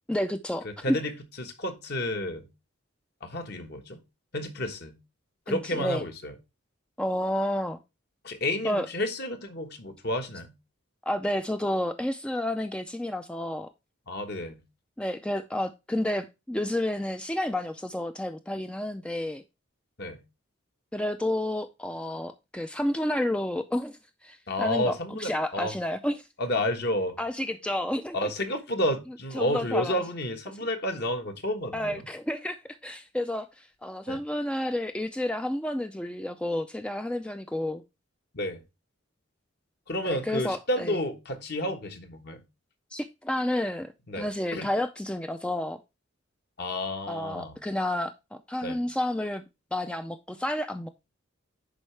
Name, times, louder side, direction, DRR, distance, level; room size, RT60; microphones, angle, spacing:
voice 1, 0.1-1.0 5.5-6.0 7.0-7.8 8.6-8.9 11.1-13.7 15.0-19.4 20.9-26.3 27.2-28.3 29.3-30.0 31.7-37.8 40.0-40.9 42.9-45.8 47.1-49.4 49.7-50.9, left 1 dB, 5° left, 0.4 m, -30 dB
voice 2, 0.6-2.5 3.2-4.0 4.3-5.0 5.5-6.3 8.2-10.5 14.1-14.6 20.0-20.2 24.5-25.7 26.4-27.2 28.1-32.0 34.1-34.2 38.3-38.6 39.9-42.4 44.1-44.7 46.6-47.6 48.6-48.8, left 1 dB, 50° left, 1.3 m, -31 dB
10.5 x 4.6 x 3.3 m
head